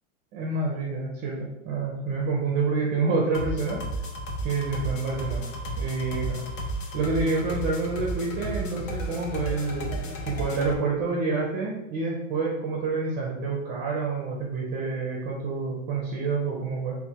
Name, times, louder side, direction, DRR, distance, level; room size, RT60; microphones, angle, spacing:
voice 1, 0.3-3.8 4.4-6.4 6.9-16.9, right 4 dB, 25° right, -2 dB, 0.6 m, -28 dB
sound 1, 3.3-10.7, right 1 dB, 90° left, 1.1 m, -33 dB
4.6 x 3.6 x 2.9 m, 0.97 s
supercardioid pair, 160°, 37 cm